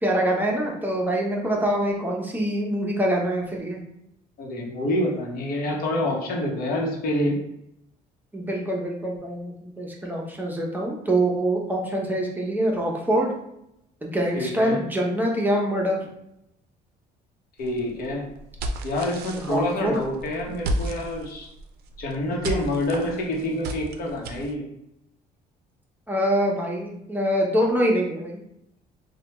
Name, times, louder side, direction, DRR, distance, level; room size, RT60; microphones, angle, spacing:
voice 1, 0.0-3.8 8.3-13.3 14.0-16.0 19.4-20.0 26.1-28.4, right 1 dB, 10° right, -1 dB, 0.6 m, -24 dB
voice 2, 4.4-7.4 14.3-14.8 17.6-18.2 18.8-21.5 22.0-24.6, left 1 dB, 60° left, 0 dB, 0.9 m, -27 dB
sound 1, 17.6-24.5, right 1 dB, 70° right, 0.4 m, -34 dB
3.2 x 2.2 x 2.9 m, 0.81 s
cardioid pair, 110°, 17 cm